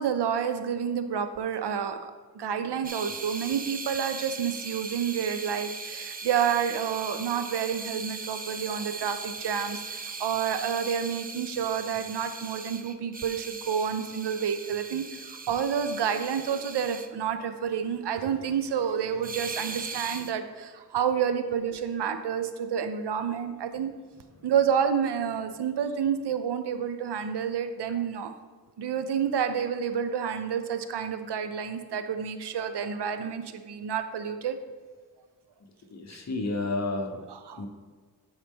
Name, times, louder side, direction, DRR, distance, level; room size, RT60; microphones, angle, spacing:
voice 1, 0.0-2.0 2.3-23.9 24.4-28.3 28.8-34.6 36.1-36.2 37.3-37.7, right 7 dB, 90° right, 9 dB, 0.6 m, -29 dB
sound 1, 2.8-17.1 19.2-20.3, right 4 dB, 25° right, 0.3 m, -39 dB
voice 2, 35.9-37.2 37.6-37.7, left 2 dB, 40° left, 3 dB, 0.8 m, -31 dB
9.5 x 4.1 x 3.5 m, 1.5 s
wide cardioid pair, 135°, 39 cm